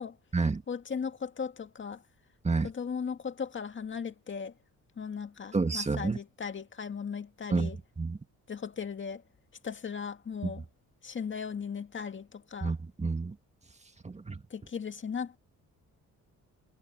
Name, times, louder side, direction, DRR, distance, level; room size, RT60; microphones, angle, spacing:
voice 1, 0.7-2.0 2.6-4.5 5.0-7.8 8.5-9.2 9.6-10.6 11.0-12.8 14.5-15.4, left 6 dB, 40° left, 2.0 m, -37 dB
voice 2, 5.5-6.2 7.5-7.7 8.0-8.2 10.4-10.5 12.6-13.3 14.0-14.4, right 4 dB, 20° right, 1.9 m, -29 dB
cardioid pair, 90°, 30 cm